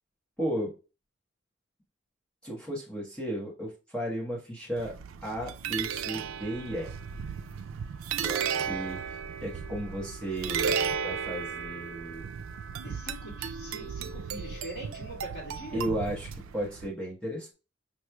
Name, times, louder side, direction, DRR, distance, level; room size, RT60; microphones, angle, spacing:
voice 1, 0.4-0.7 2.4-4.9 5.2-6.9 8.2-10.7 11.0-12.3 15.7-17.5, right 1 dB, 5° left, -5 dB, 1.0 m, -34 dB
sound 1, 4.8-16.9, right 7 dB, 90° right, 0.4 m, -35 dB
voice 2, 12.8-15.8, right 1 dB, 50° left, -6 dB, 2.1 m, -43 dB
5.5 x 3.1 x 2.2 m, 0.32 s
head